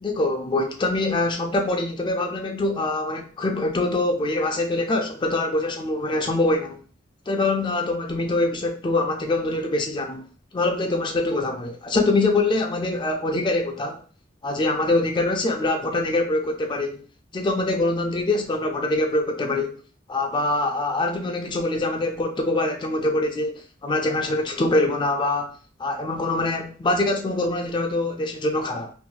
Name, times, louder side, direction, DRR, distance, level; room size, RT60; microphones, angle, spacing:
voice 1, 0.0-6.8 7.3-10.3 10.5-14.0 14.4-17.0 17.3-19.8 20.1-25.5 25.8-28.9, left 2 dB, 25° left, 4 dB, 0.3 m, -24 dB
2.9 x 2.6 x 2.3 m, 0.40 s
head